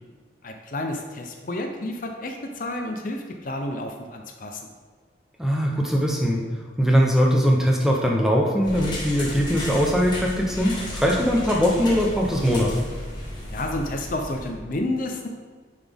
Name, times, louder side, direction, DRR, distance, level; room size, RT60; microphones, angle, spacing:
voice 1, 0.4-4.7 13.5-15.3, left 1 dB, 45° left, 3 dB, 0.5 m, -30 dB
voice 2, 5.4-6.4 6.8-12.8, equal, ahead, -1 dB, 0.7 m, -21 dB
sound 1, 8.6-14.5, left 1 dB, 25° left, 1.4 m, -33 dB
9.5 x 4.0 x 3.5 m, 1.5 s
head